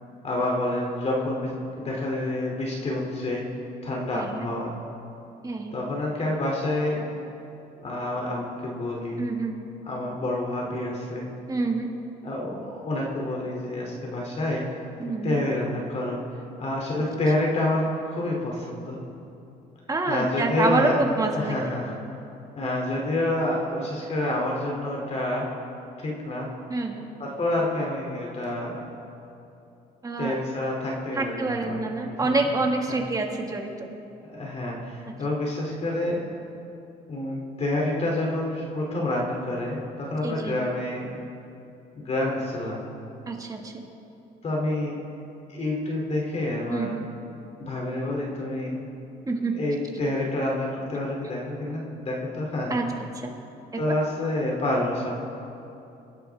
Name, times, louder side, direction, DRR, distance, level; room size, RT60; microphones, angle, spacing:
voice 1, 0.2-3.5 3.8-4.7 5.7-7.0 7.8-9.3 9.8-11.3 12.2-14.6 15.0-16.2 16.6-19.0 20.1-20.9 21.3-21.9 22.6-25.5 26.0-26.5 27.2-28.9 30.2-32.3 32.9-33.0 34.3-36.3 37.1-41.1 42.0-42.8 44.4-45.0 45.5-46.9 47.6-48.8 49.5-52.8 53.8-55.1, left 1 dB, 40° left, -2 dB, 2.8 m, -28 dB
voice 2, 4.1-4.5 5.4-5.7 9.2-9.6 11.5-11.9 15.0-15.4 19.9-21.7 26.7-27.1 30.0-30.4 31.2-33.9 40.2-40.6 43.3-43.9 46.7-47.1 49.3-49.6 52.7-52.9 53.2-53.3 53.7-53.8, right 3 dB, 20° right, 2 dB, 1.8 m, -27 dB
25.5 x 11.0 x 3.5 m, 2.8 s
cardioid pair, 110°, 17 cm